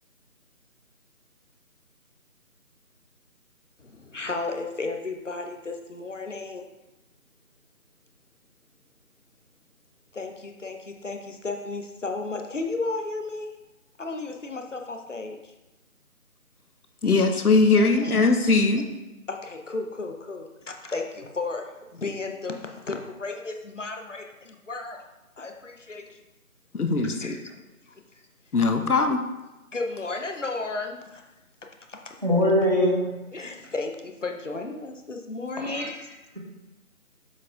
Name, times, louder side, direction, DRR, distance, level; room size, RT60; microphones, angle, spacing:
voice 1, 3.8-6.6 10.1-13.5 14.0-15.4 17.8-18.1 19.3-25.0 25.4-26.2 27.2-27.6 29.7-31.2 31.9-32.2 33.3-35.9, left 3 dB, 55° left, 3 dB, 0.8 m, -34 dB
voice 2, 17.0-18.9 26.7-27.4 28.5-29.2, left 3 dB, 90° left, 6 dB, 1.0 m, -20 dB
voice 3, 32.2-33.0 33.4-33.5 35.6-35.9, left 1 dB, 30° right, -3 dB, 1.0 m, -22 dB
7.3 x 4.4 x 3.6 m, 1.0 s
figure-of-eight pair, 180°, 43 cm